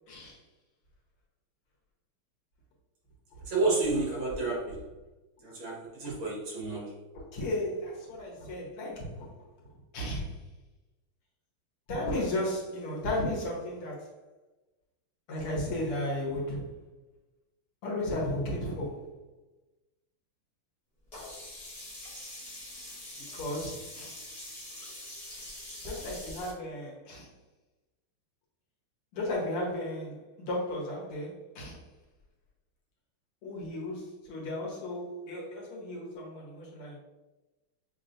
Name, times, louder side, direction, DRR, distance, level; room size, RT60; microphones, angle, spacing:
voice 1, 0.1-0.4 7.1-9.4 9.9-10.4 11.9-14.2 15.3-16.7 17.8-19.1 23.2-24.2 25.9-27.3 29.1-31.9 33.4-37.0, left 1 dB, 85° left, -3 dB, 2.2 m, -34 dB
voice 2, 3.5-4.8 5.4-7.0, right 3 dB, 65° right, -3 dB, 2.2 m, -30 dB
Sink (filling or washing), 21.1-26.5, left 1 dB, 20° left, 1.0 m, -44 dB
6.4 x 3.0 x 2.6 m, 1.1 s
omnidirectional pair, 2.4 m